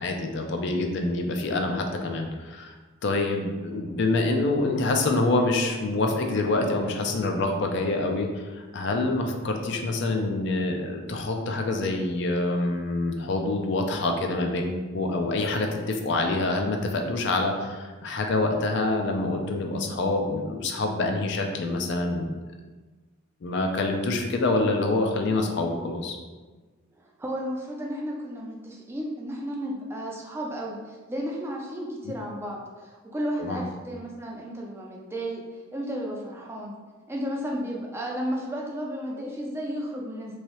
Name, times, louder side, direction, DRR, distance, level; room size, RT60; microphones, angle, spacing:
voice 1, 0.0-2.7 3.0-8.3 8.5-22.3 23.4-26.2 33.4-33.6, left 2 dB, 55° left, 3 dB, 0.4 m, -26 dB
voice 2, 27.0-35.4 35.7-36.7 37.1-40.4, equal, 10° right, -2 dB, 0.4 m, -33 dB
3.1 x 2.7 x 2.9 m, 1.3 s
head